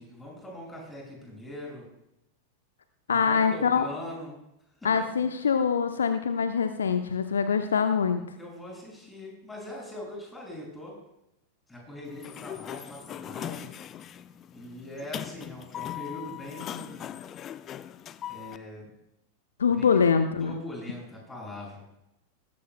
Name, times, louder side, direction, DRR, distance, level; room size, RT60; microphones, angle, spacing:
voice 1, 0.0-1.9 3.1-4.4 4.8-5.2 8.4-11.0 11.7-13.7 14.5-17.2 18.3-18.9 19.6-20.0 20.4-21.8, left 1 dB, 10° left, -1 dB, 6.2 m, -41 dB
voice 2, 3.1-3.8 4.8-8.2 19.6-20.5, left 6 dB, 70° left, 8 dB, 0.7 m, -24 dB
Sliding door, 12.1-18.6, left 11 dB, 30° left, 0.5 m, -40 dB
19.0 x 16.0 x 2.2 m, 0.85 s
figure-of-eight pair, 90°, 0 cm